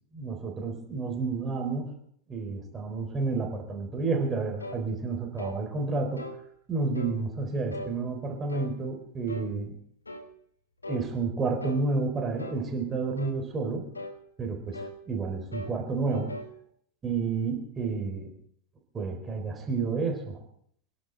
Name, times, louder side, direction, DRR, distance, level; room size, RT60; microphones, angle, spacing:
voice 1, 0.1-2.0 2.3-6.3 6.7-9.8 10.9-13.9 14.4-16.4 17.0-18.3 18.9-20.4, right 4 dB, 20° right, 3 dB, 3.9 m, -30 dB
sound 1, 4.6-4.9 5.4-5.6 6.2-6.4 6.9-7.2 7.7-8.0 8.5-8.7 9.3-9.5 10.1-10.3 10.8-11.1 11.6-11.9 12.4-12.6 13.2-13.4 13.9-14.2 14.7-15.0 15.5-15.8 16.1-16.5, left 1 dB, 80° left, 1.7 m, -39 dB
27.0 x 11.5 x 3.9 m, 0.65 s
figure-of-eight pair, 90°, 0 cm